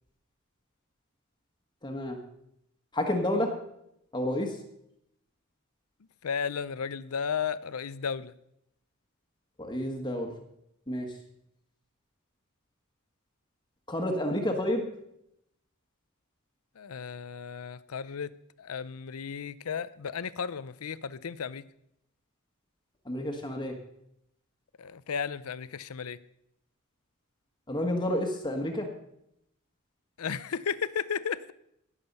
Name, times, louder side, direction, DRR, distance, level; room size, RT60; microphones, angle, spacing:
voice 1, 1.8-2.2 2.9-3.5 4.1-4.5 9.6-10.3 10.9-11.1 13.9-14.8 23.1-23.7 27.7-28.9, left 1 dB, 20° left, 2 dB, 1.4 m, -29 dB
voice 2, 6.2-8.3 16.8-18.3 18.6-21.6 24.8-26.2 30.2-31.5, left 6 dB, 90° left, 17 dB, 0.6 m, -34 dB
17.5 x 7.4 x 5.4 m, 0.78 s
head